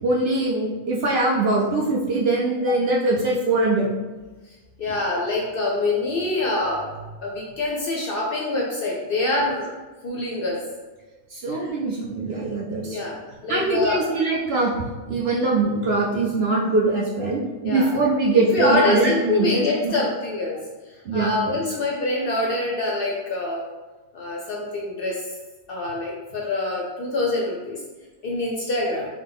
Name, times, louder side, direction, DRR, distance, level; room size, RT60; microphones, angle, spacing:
voice 1, 0.0-3.9 11.3-13.0 13.5-14.7 15.1-19.9 21.0-21.8, right 2 dB, 65° right, -3 dB, 0.6 m, -22 dB
voice 2, 4.8-6.8 7.2-9.7 10.0-10.6 11.6-11.7 12.7-13.1 13.4-14.0 17.6-17.9 18.5-20.6 21.1-23.6 24.1-25.2 25.7-27.8 28.2-29.1, left 2 dB, 60° left, -2 dB, 0.6 m, -25 dB
4.0 x 2.2 x 3.4 m, 1.3 s
omnidirectional pair, 1.4 m